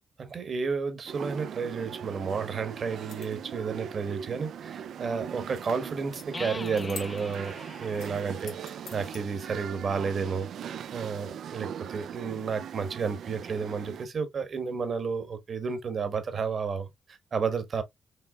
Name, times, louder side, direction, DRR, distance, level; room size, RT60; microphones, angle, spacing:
voice 1, 0.2-10.5 10.9-17.8, right 5 dB, 55° right, 1.2 m, -32 dB
sound 1, 1.1-14.1, right 8 dB, 75° right, 0.3 m, -40 dB
sound 2, 2.9-3.5 6.1-6.3 6.6-7.5 7.9-9.2, left 7 dB, 90° left, 0.9 m, -46 dB
sound 3, 6.3-10.0, left 3 dB, 30° left, 0.5 m, -43 dB
5.4 x 3.3 x 2.3 m
cardioid pair, 75°, 0 cm